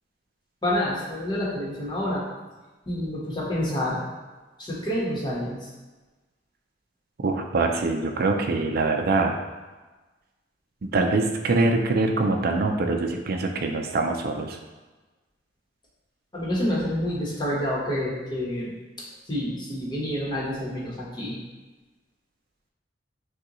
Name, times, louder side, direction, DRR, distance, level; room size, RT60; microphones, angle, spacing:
voice 1, 0.6-2.3 2.9-4.0 4.6-5.7 16.3-18.7 19.3-21.4, left 1 dB, 25° left, -5 dB, 1.1 m, -28 dB
voice 2, 7.2-9.4 10.8-14.6, right 3 dB, 55° right, 4 dB, 0.5 m, -24 dB
6.3 x 2.4 x 3.0 m, 1.2 s
head